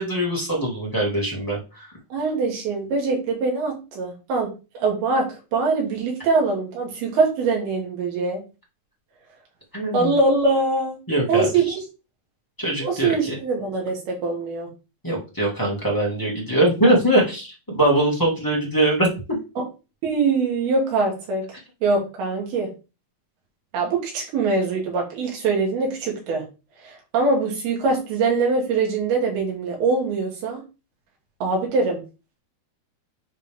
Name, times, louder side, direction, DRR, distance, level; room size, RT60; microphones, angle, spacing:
voice 1, 0.0-1.9 9.7-10.1 11.1-11.7 12.6-13.4 15.0-19.1, right 1 dB, 20° left, -3 dB, 0.5 m, -22 dB
voice 2, 2.1-8.4 9.9-11.0 11.3-11.6 12.8-14.7 20.0-21.4 21.8-22.7 23.7-26.4 26.8-30.6 31.4-32.0, right 3 dB, 85° right, -1 dB, 4.1 m, -23 dB
9.9 x 3.6 x 3.5 m, 0.31 s
omnidirectional pair, 4.3 m